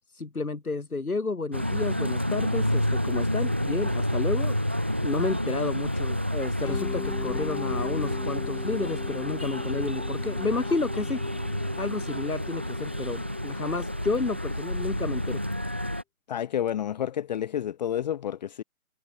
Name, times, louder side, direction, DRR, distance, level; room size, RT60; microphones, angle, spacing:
voice 1, 0.1-11.2 11.8-15.4, left 3 dB, 75° left, 8.0 m, -31 dB
sound 1, 1.5-16.0, equal, 10° right, 0.5 m, -29 dB
Mallet percussion, 6.6-15.4, left 8 dB, 10° left, 6.2 m, -41 dB
voice 2, 16.3-18.6, left 10 dB, 30° left, 1.4 m, -30 dB
figure-of-eight pair, 145°, 43 cm